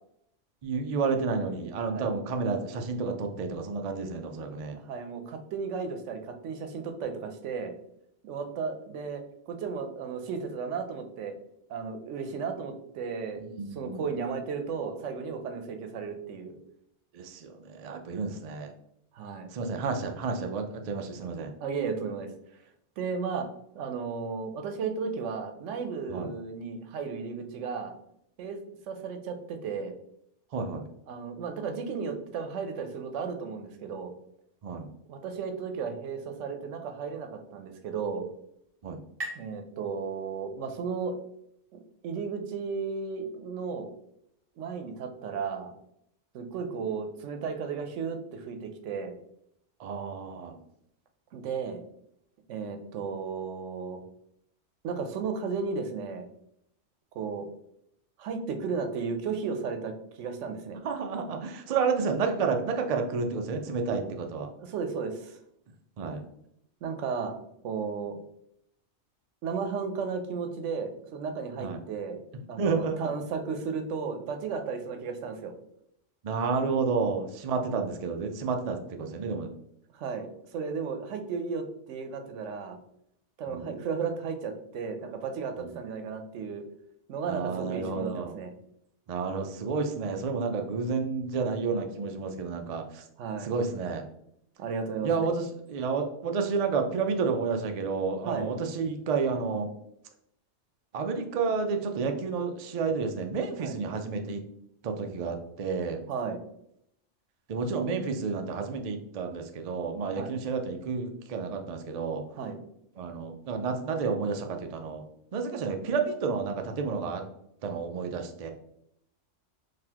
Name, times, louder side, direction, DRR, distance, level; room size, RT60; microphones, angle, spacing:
voice 1, 0.6-4.8 13.4-14.1 17.1-18.7 19.5-21.5 26.1-26.3 30.5-30.9 34.6-34.9 38.8-39.0 49.8-50.6 60.8-64.5 66.0-66.2 71.6-71.8 72.6-73.1 76.2-79.5 83.5-83.7 85.6-85.8 87.3-88.3 89.1-93.0 93.4-94.1 95.0-95.4 95.7-99.7 100.9-104.4 104.8-106.0 107.5-112.2 113.0-115.0 115.3-117.2 117.6-118.5, right 5 dB, 60° right, 4 dB, 0.4 m, -30 dB
voice 2, 4.8-7.7 8.2-11.3 11.7-13.4 13.7-16.6 19.1-19.5 21.6-22.3 23.0-23.5 23.7-27.9 28.4-28.6 28.9-29.9 31.1-34.1 35.1-38.3 39.3-41.1 41.7-43.9 44.6-45.7 46.3-49.2 51.3-51.8 52.5-54.0 54.8-56.3 57.1-57.5 58.2-60.8 64.6-65.4 66.8-67.4 67.6-68.2 69.4-72.2 72.5-75.5 79.9-82.8 83.4-86.6 87.1-88.5 93.2-93.5 94.6-95.3 98.2-98.5 103.6-103.8 106.1-106.4 110.2-110.3 112.4-112.6, right 5 dB, 90° right, 6 dB, 0.9 m, -34 dB
sound 1, 37.7-41.1, right 1 dB, 30° right, 1.1 m, -45 dB
4.0 x 2.8 x 2.8 m, 0.74 s
omnidirectional pair, 1.2 m